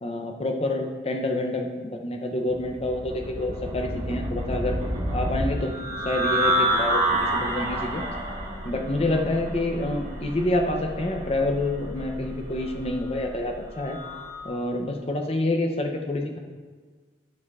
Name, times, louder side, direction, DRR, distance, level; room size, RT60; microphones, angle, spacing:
voice 1, 0.0-4.8 5.1-8.0 8.6-14.0 14.4-16.4, left 1 dB, 30° left, 3 dB, 0.6 m, -27 dB
sound 1, 2.5-14.4, right 1 dB, 35° right, 1.5 m, -29 dB
11.0 x 4.2 x 2.4 m, 1.5 s
head